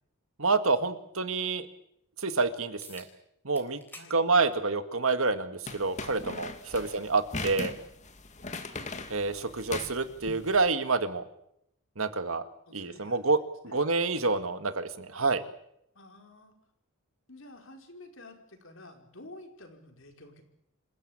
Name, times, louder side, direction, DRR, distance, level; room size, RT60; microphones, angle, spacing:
voice 1, 0.4-1.7 2.2-3.0 3.4-3.8 4.1-7.7 9.1-11.3 12.0-12.4 12.7-13.4 13.6-15.4, right 3 dB, 65° right, 10 dB, 1.9 m, -28 dB
sound 1, 2.8-3.1 3.5-4.1 4.5-4.7 5.7-5.8 10.8-10.9, left 2 dB, 10° left, 3.8 m, -49 dB
sound 2, 5.7-10.7, left 3 dB, 30° left, 2.2 m, -39 dB
voice 2, 12.7-13.3 13.6-13.8 14.5-14.7 15.9-16.6 17.3-20.4, left 2 dB, 60° left, 4 dB, 5.0 m, -51 dB
27.5 x 16.0 x 8.9 m, 0.75 s
head